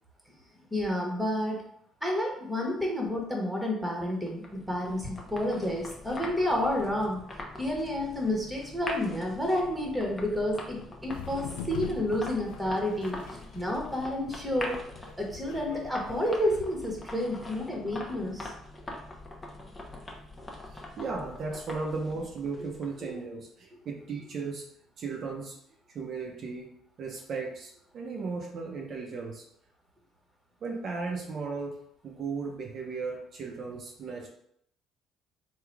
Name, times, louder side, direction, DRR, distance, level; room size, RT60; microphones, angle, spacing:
voice 1, 0.7-1.6 2.0-7.2 7.6-14.8 15.2-18.5 23.0-23.1, left 1 dB, 5° right, -1 dB, 1.3 m, -30 dB
sound 1, 4.1-23.1, left 1 dB, 20° left, 0.8 m, -43 dB
sound 2, 11.1-16.6, left 7 dB, 90° left, 0.3 m, -43 dB
voice 2, 20.7-24.7 25.0-25.6 25.9-26.7 27.0-29.5 30.6-34.3, right 4 dB, 55° right, 0 dB, 0.7 m, -36 dB
3.8 x 2.4 x 4.6 m, 0.69 s
supercardioid pair, 85°, 0 cm